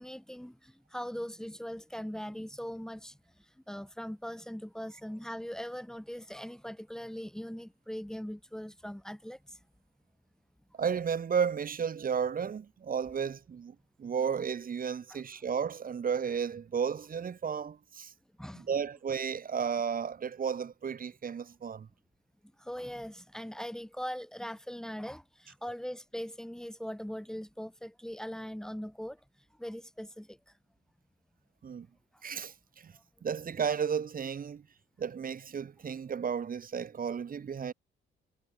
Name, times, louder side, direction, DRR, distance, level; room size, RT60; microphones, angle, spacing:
voice 1, 0.0-9.6 15.1-15.2 18.4-18.7 22.6-29.2 29.6-30.5 32.1-32.2 32.9-33.0, equal, 5° left, 5.0 m, -41 dB
voice 2, 10.8-18.1 18.5-21.9 31.6-31.9 32.2-32.9 33.2-34.6 35.0-37.7, right 7 dB, 45° right, 2.8 m, -33 dB
cardioid pair, 90°, 20 cm